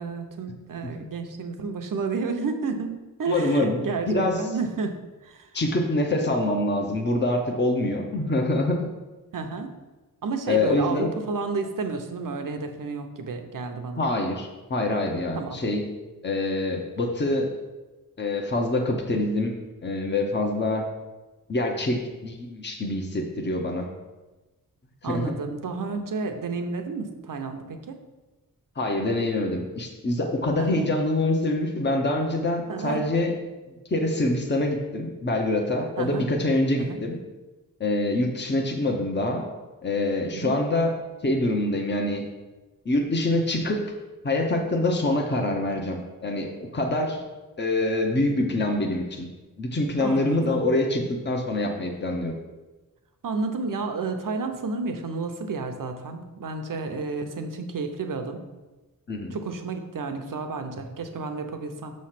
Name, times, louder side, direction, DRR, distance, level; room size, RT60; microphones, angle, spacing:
voice 1, 0.0-5.0 5.2-5.5 9.3-9.7 10.2-14.1 15.4-15.6 25.0-28.0 30.6-30.9 32.7-33.1 36.0-36.3 36.8-37.0 40.3-40.6 50.0-50.7 53.2-58.4 59.3-61.9, right 4 dB, 70° right, 6 dB, 0.8 m, -31 dB
voice 2, 3.3-3.8 4.1-4.4 5.5-8.9 10.5-11.1 14.0-15.8 16.2-17.5 18.2-19.5 19.8-20.9 21.5-23.9 25.0-25.3 28.8-33.3 33.9-37.2 37.8-39.4 39.8-40.9 41.2-42.2 42.8-43.8 44.2-47.2 47.6-49.3 49.6-52.3 59.1-59.4, left 2 dB, 30° left, 2 dB, 0.8 m, -25 dB
6.4 x 3.2 x 5.8 m, 1.1 s
wide cardioid pair, 80°, 34 cm